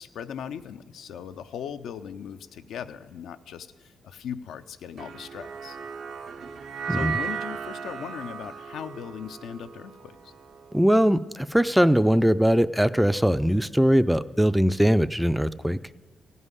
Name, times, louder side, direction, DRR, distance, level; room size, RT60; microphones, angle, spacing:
voice 1, 0.0-5.8 6.9-10.3, left 8 dB, 85° left, 9 dB, 0.5 m, -38 dB
sound 1, 5.0-11.4, right 6 dB, 70° right, 0.6 m, -36 dB
voice 2, 10.7-15.8, equal, 5° right, 13 dB, 0.3 m, -21 dB
15.5 x 5.5 x 9.7 m, 1.3 s
cardioid pair, 95°, 0 cm